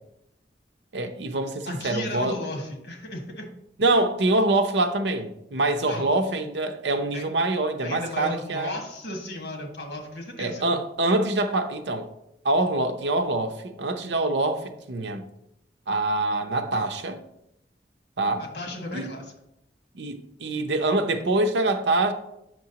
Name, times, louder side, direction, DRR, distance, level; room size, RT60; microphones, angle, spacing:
voice 1, 0.9-2.4 3.8-8.7 10.4-12.1 12.4-15.3 15.9-17.2 18.2-18.4 18.9-19.1 19.9-22.1, right 2 dB, 80° right, 0.7 m, -25 dB
voice 2, 1.6-3.5 5.9-6.2 7.1-7.2 7.8-10.8 18.4-19.2, left 1 dB, 65° left, 1.6 m, -34 dB
8.6 x 6.1 x 2.9 m
head